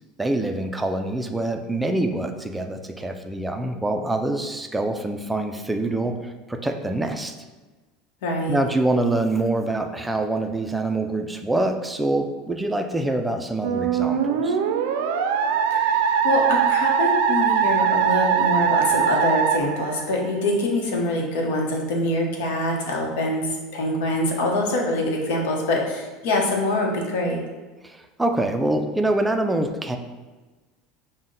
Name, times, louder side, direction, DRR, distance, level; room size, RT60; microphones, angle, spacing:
voice 1, 0.2-7.3 8.5-14.6 27.8-30.0, right 2 dB, 5° right, 5 dB, 0.3 m, -25 dB
voice 2, 8.2-8.6 15.7-27.4, left 1 dB, 80° left, 0 dB, 0.9 m, -24 dB
Musical instrument, 13.6-20.5, right 7 dB, 80° right, 0.4 m, -21 dB
5.6 x 2.1 x 3.8 m, 1.2 s
supercardioid pair, 150°, 0 cm